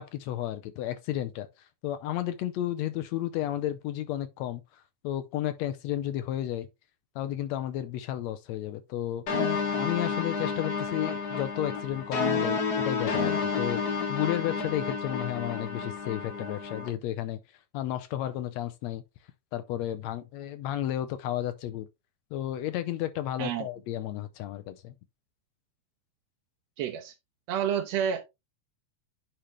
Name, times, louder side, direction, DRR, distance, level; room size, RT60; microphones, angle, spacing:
voice 1, 0.0-1.5 1.8-4.6 5.0-6.7 7.1-9.2 9.8-17.4 17.7-19.0 19.5-21.9 22.3-24.9, left 12 dB, 75° left, 1.7 m, -32 dB
sound 1, 9.3-16.9, left 5 dB, 50° left, 1.2 m, -30 dB
voice 2, 26.8-27.1 27.5-28.2, right 8 dB, 70° right, 1.9 m, -29 dB
10.0 x 4.4 x 3.0 m
omnidirectional pair, 3.4 m